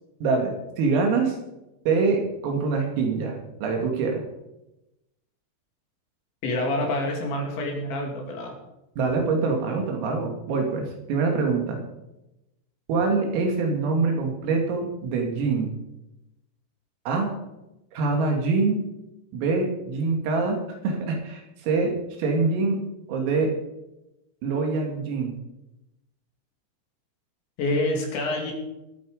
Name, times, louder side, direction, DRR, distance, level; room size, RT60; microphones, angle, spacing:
voice 1, 0.2-1.4 1.9-4.2 9.0-11.8 12.9-15.8 17.1-17.3 17.9-18.8 19.3-20.6 20.8-22.8 23.1-23.5 24.4-25.4, right 4 dB, 90° right, 2 dB, 5.3 m, -24 dB
voice 2, 6.4-8.6 27.6-28.5, left 1 dB, 65° left, 1 dB, 4.9 m, -27 dB
21.5 x 9.1 x 5.1 m, 0.93 s
omnidirectional pair, 5.8 m